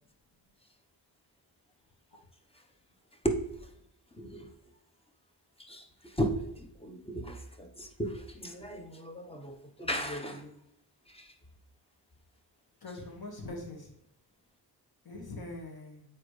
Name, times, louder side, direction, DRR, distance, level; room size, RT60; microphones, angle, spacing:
voice 1, 3.2-3.7 4.2-4.5 5.6-10.6 11.1-11.3, right 1 dB, 15° left, 4 dB, 1.0 m, -36 dB
voice 2, 12.8-13.9 15.1-16.1, left 2 dB, 60° left, -1 dB, 1.8 m, -42 dB
8.5 x 4.2 x 3.2 m, 0.81 s
wide cardioid pair, 80°, 41 cm